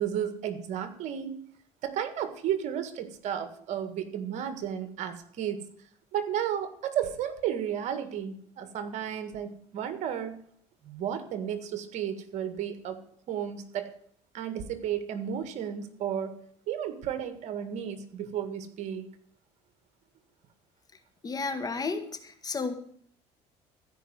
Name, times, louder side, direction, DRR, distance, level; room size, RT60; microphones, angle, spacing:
voice 1, 0.0-1.4 1.8-5.7 6.1-10.4 10.8-13.9 14.3-16.4 16.7-19.1, right 9 dB, 65° right, 9 dB, 1.7 m, -33 dB
voice 2, 21.2-22.7, left 4 dB, 30° left, 9 dB, 1.7 m, -32 dB
15.0 x 5.3 x 9.4 m, 0.62 s
supercardioid pair, 95°, 13 cm